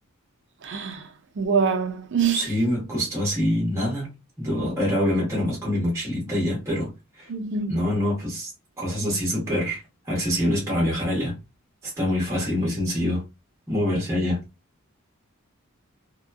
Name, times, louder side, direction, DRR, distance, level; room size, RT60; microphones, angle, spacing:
voice 1, 0.6-1.1 1.4-2.5 7.3-7.8, right 6 dB, 55° right, 0.4 m, -25 dB
voice 2, 2.3-4.1 4.4-7.3 7.7-8.5 8.8-11.4 11.8-13.2 13.7-14.4, left 1 dB, 15° right, 1.1 m, -25 dB
2.8 x 2.2 x 2.3 m
head